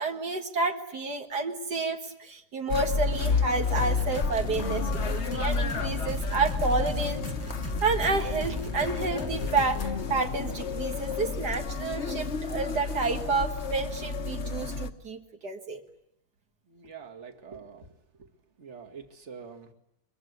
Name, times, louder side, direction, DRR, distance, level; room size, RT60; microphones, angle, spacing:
voice 1, 0.0-7.2 7.8-15.8, right 4 dB, 75° right, 5 dB, 2.2 m, -30 dB
sound 1, 2.7-14.9, left 4 dB, 45° left, 1.4 m, -31 dB
sound 2, 3.8-10.0, right 1 dB, 15° right, 0.7 m, -39 dB
voice 2, 16.7-18.3 18.6-19.7, right 6 dB, 45° right, 5 dB, 2.4 m, -46 dB
23.0 x 23.0 x 9.6 m, 0.84 s
omnidirectional pair, 1.8 m